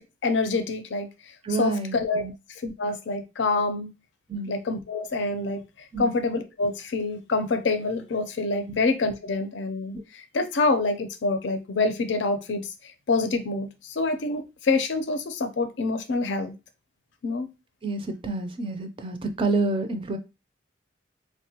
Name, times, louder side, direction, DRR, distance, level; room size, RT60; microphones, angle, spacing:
voice 1, 0.2-1.1 1.6-2.2 2.6-3.9 4.5-5.6 6.0-10.0 10.3-12.6 13.1-16.5 17.2-17.5, left 3 dB, 75° left, 0.5 m, -26 dB
voice 2, 1.4-2.3 4.3-4.5 5.9-6.1 8.7-8.8 9.9-10.0 17.8-20.2, right 3 dB, 30° right, 0.4 m, -28 dB
3.5 x 2.1 x 2.8 m
head